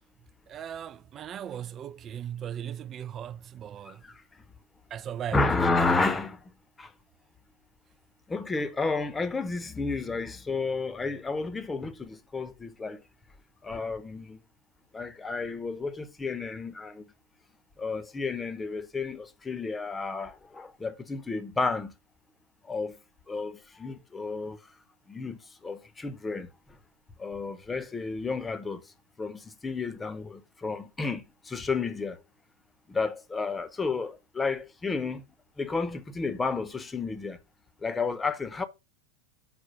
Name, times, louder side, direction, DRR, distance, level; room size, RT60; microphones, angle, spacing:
voice 1, 0.5-4.0 4.9-5.4, right 9 dB, 25° right, 0.4 m, -38 dB
voice 2, 3.8-4.2 5.3-6.5 6.8-6.9 8.3-13.0 13.6-14.4 14.9-17.0 17.8-21.9 22.6-23.0 23.3-24.6 25.1-26.5 27.2-28.9 29.2-32.2 32.9-35.2 35.6-37.4 37.8-38.6, left 4 dB, 15° left, 0.9 m, -31 dB
6.0 x 4.7 x 6.5 m
figure-of-eight pair, 90°, 0 cm